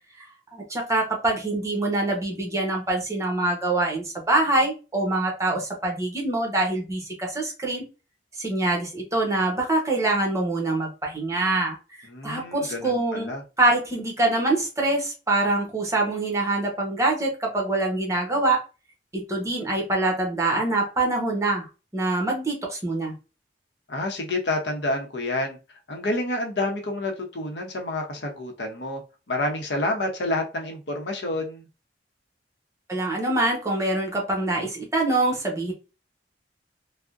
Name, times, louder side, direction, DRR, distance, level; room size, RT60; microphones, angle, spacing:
voice 1, 0.5-7.8 8.4-13.3 13.6-18.6 19.1-21.7 21.9-23.1 32.9-35.7, right 2 dB, 20° right, 0.9 m, -25 dB
voice 2, 12.1-13.4 23.9-25.6 25.9-29.0 29.3-31.7, left 2 dB, 75° left, 0.7 m, -28 dB
3.5 x 2.1 x 2.4 m
head